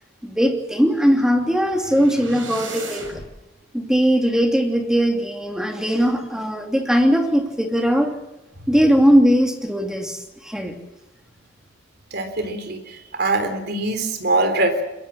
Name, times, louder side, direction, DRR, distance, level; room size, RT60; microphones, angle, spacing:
voice 1, 0.2-3.0 3.7-8.1 8.7-10.7, equal, 5° right, 3 dB, 2.8 m, -19 dB
sound 1, 1.1-3.3, right 3 dB, 85° right, 7.0 m, -37 dB
voice 2, 12.1-14.8, right 2 dB, 60° right, 8 dB, 3.7 m, -23 dB
22.5 x 22.0 x 7.4 m, 0.93 s
head